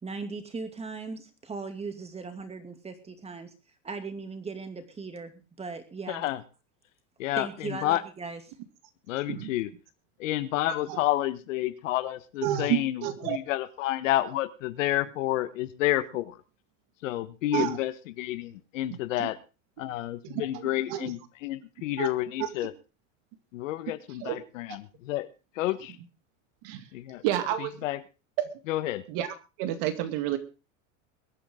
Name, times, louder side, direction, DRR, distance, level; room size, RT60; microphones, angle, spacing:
voice 1, 0.0-3.5 3.8-6.3 7.4-8.4, right 4 dB, 15° right, 8 dB, 2.6 m, -38 dB
voice 2, 6.1-6.4 7.2-7.5 7.8-8.0 9.1-9.7 10.2-16.4 17.0-19.4 19.8-22.7 23.5-25.3 25.6-25.9 26.9-27.2 27.8-28.0 28.7-29.0, left 15 dB, 80° left, 13 dB, 1.5 m, -30 dB
voice 3, 12.4-13.4 17.5-17.8 18.9-19.3 20.2-21.1 22.0-22.1 22.4-22.5 24.2-24.4 24.7-24.8 26.6-26.9 27.2-27.8 28.4-28.5 29.1-30.4, right 12 dB, 60° right, 9 dB, 2.3 m, -30 dB
22.0 x 9.3 x 3.8 m, 0.31 s
supercardioid pair, 125°, 38 cm